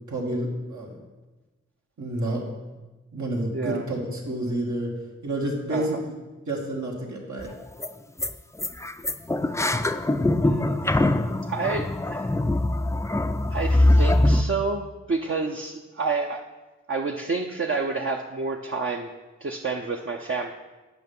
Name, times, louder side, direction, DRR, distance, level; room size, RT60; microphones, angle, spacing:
voice 1, 0.1-0.9 2.0-2.4 3.1-4.9 5.2-6.1 6.5-7.5, right 1 dB, 80° right, -2 dB, 1.8 m, -29 dB
voice 2, 3.5-3.8 5.7-6.0 10.4-11.0 11.5-12.4 13.5-16.4 16.9-19.1 19.4-20.5, right 4 dB, 45° right, 2 dB, 0.6 m, -29 dB
sound 1, 7.4-7.5 7.8-7.9 8.2-8.3 8.6-14.4, left 1 dB, 10° left, 0.4 m, -22 dB
8.2 x 5.6 x 5.4 m, 1.2 s
wide cardioid pair, 55°, 29 cm